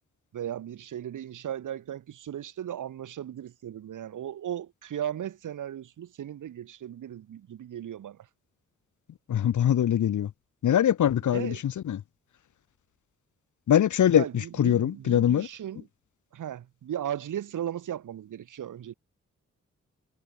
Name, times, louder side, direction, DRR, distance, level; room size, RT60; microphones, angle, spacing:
voice 1, 0.3-8.3 11.3-11.6 14.1-15.9 16.3-18.9, right 10 dB, 90° right, 6.5 m, -36 dB
voice 2, 9.3-10.3 10.6-12.0 13.7-15.5, left 10 dB, 75° left, 1.2 m, -23 dB
cardioid pair, 55°, 30 cm